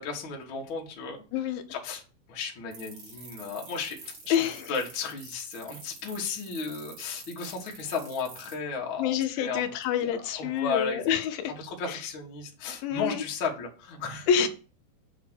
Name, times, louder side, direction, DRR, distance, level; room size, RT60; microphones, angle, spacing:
voice 1, 0.0-1.2 1.7-2.0 2.3-9.7 10.0-11.0 11.4-14.3, left 5 dB, 55° left, 1.4 m, -34 dB
voice 2, 1.3-1.6 4.3-4.7 9.0-11.5 11.9-12.0 12.8-13.2 14.3-14.5, left 8 dB, 80° left, 2.5 m, -27 dB
sound 1, 2.7-8.5, right 6 dB, 55° right, 3.9 m, -46 dB
7.3 x 3.2 x 6.2 m
omnidirectional pair, 4.3 m